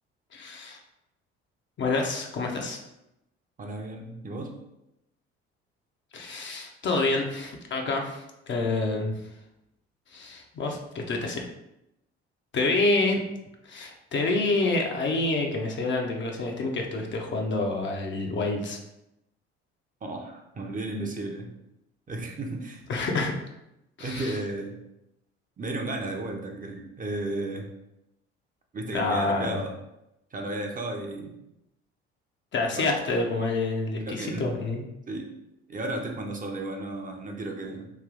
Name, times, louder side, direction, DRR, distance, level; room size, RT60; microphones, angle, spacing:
voice 1, 0.3-0.8 1.8-2.8 6.1-9.1 10.1-11.5 12.5-13.2 13.6-18.8 22.9-23.3 24.0-24.4 28.9-29.6 32.5-34.8, left 3 dB, 35° left, 2 dB, 0.7 m, -27 dB
voice 2, 3.6-4.6 20.0-21.5 22.1-22.8 24.0-24.8 25.6-27.7 28.7-29.8 30.3-31.3 32.7-32.9 34.0-34.5 35.1-35.3 35.7-37.9, right 2 dB, 25° right, 1 dB, 0.7 m, -34 dB
3.3 x 2.6 x 3.7 m, 0.87 s
hypercardioid pair, 55°, 32 cm